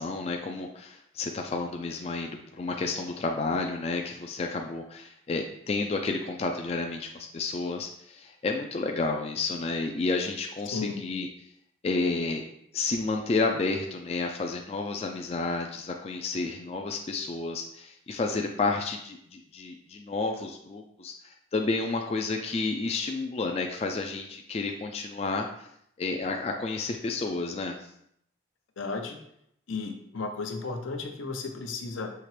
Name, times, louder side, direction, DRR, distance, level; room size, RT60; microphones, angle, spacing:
voice 1, 0.0-11.3 11.8-12.4 12.7-25.7 26.0-27.8, left 3 dB, 30° left, 3 dB, 0.3 m, -31 dB
voice 2, 10.7-11.1 28.8-29.2 29.7-32.1, left 4 dB, 80° left, 4 dB, 0.7 m, -34 dB
5.7 x 2.9 x 3.2 m, 0.72 s
head